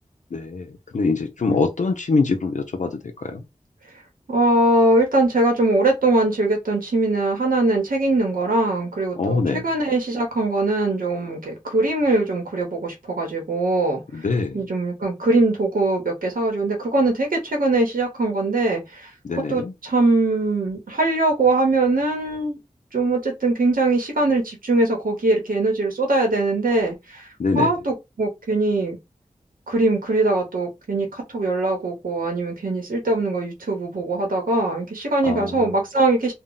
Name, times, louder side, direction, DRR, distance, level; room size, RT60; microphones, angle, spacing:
voice 1, 0.3-0.7 0.9-2.9 3.2-3.4 9.2-9.6 14.1-14.6 19.2-19.7 27.4-27.7 35.2-35.5, left 4 dB, 60° left, 0.5 m, -23 dB
voice 2, 4.3-14.0 14.5-19.1 19.5-22.6 22.9-27.3 27.5-29.0 29.7-36.3, right 2 dB, 85° right, 1.0 m, -21 dB
2.2 x 2.1 x 3.8 m
cardioid pair, 40°, 14 cm